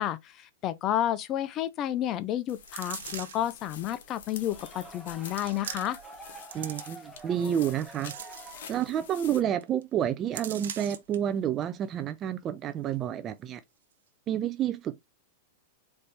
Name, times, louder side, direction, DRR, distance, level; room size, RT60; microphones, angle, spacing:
voice 1, 0.0-6.0, left 12 dB, 35° left, 0.6 m, -31 dB
sound 1, 2.5-9.4, left 7 dB, 70° left, 1.3 m, -47 dB
sound 2, 2.7-3.5 4.3-4.4 5.3-6.1 6.4-7.2 7.7-8.9 9.2-9.3 9.6-9.8 10.3-11.2 11.6-11.7, right 9 dB, 80° right, 0.8 m, -41 dB
sound 3, 4.2-9.3, right 2 dB, 5° right, 1.1 m, -48 dB
voice 2, 6.5-8.1 8.7-13.6 14.3-15.1, right 10 dB, 30° right, 0.4 m, -29 dB
4.3 x 3.2 x 3.3 m
hypercardioid pair, 120°, 0 cm